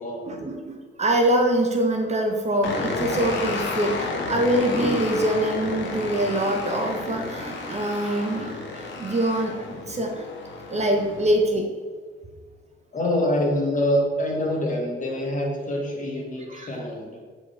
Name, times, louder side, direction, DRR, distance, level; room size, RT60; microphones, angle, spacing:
voice 1, 0.3-10.2 10.7-11.7 16.5-16.7, right 1 dB, 35° right, 2 dB, 1.2 m, -24 dB
sound 1, 2.6-11.3, left 3 dB, 70° left, 1.4 m, -32 dB
voice 2, 12.9-17.2, left 1 dB, 40° left, -1 dB, 2.0 m, -25 dB
6.5 x 5.0 x 4.8 m, 1.5 s
cardioid pair, 90°, 20 cm